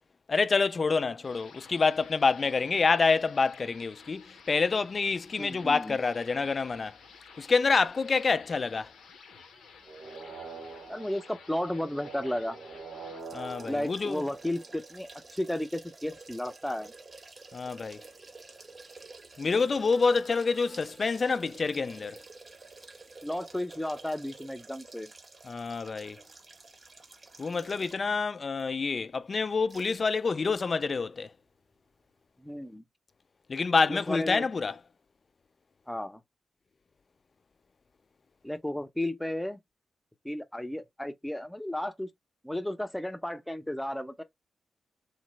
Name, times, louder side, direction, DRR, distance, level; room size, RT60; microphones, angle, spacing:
voice 1, 0.3-7.0 7.4-8.9 13.3-14.2 17.5-18.0 19.4-22.2 25.4-26.2 27.4-31.3 33.5-34.8, left 4 dB, 50° left, 0.4 m, -27 dB
sound 1, 1.2-13.2, left 5 dB, 90° left, 0.7 m, -53 dB
voice 2, 5.4-6.0 10.9-12.6 13.6-16.9 23.2-25.1 32.4-32.8 33.9-34.4 35.9-36.2 38.4-39.6 40.2-42.1 42.4-44.2, left 1 dB, 10° left, 0.6 m, -33 dB
sound 2, 9.9-15.2 19.5-21.2, right 4 dB, 90° right, 1.0 m, -46 dB
sound 3, 13.2-28.2 28.6-28.7 29.7-30.1 30.4-30.5, right 3 dB, 50° right, 0.7 m, -50 dB
3.1 x 2.0 x 3.1 m
supercardioid pair, 45°, 0 cm